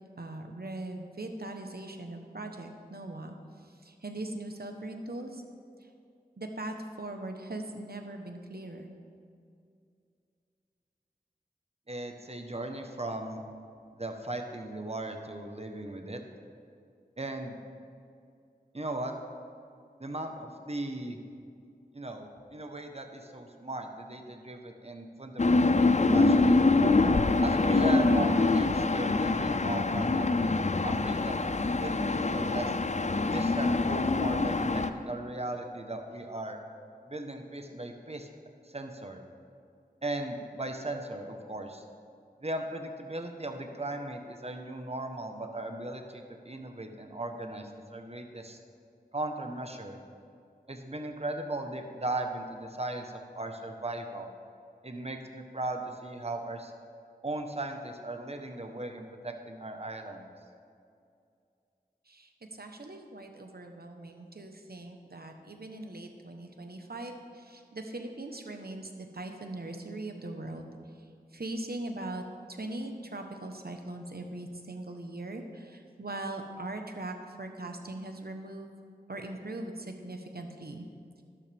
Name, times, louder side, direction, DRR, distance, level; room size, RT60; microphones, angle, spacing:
voice 1, 0.2-5.4 6.4-8.9 62.1-70.7 71.3-78.7 79.1-80.9, right 2 dB, 75° right, 4 dB, 1.1 m, -40 dB
voice 2, 11.9-13.4 13.9-16.2 17.2-17.6 18.7-19.1 20.0-21.2 21.9-26.6 27.4-30.5 30.8-32.8 33.3-36.6 37.1-38.3 38.6-39.2 40.0-41.8 42.4-48.6 49.1-50.0 50.7-54.3 54.8-56.7 57.2-60.3, right 2 dB, 40° right, 4 dB, 1.1 m, -37 dB
sound 1, 25.4-34.9, left 3 dB, 45° left, 0.5 m, -25 dB
12.0 x 12.0 x 3.5 m, 2.4 s
wide cardioid pair, 45°, 16 cm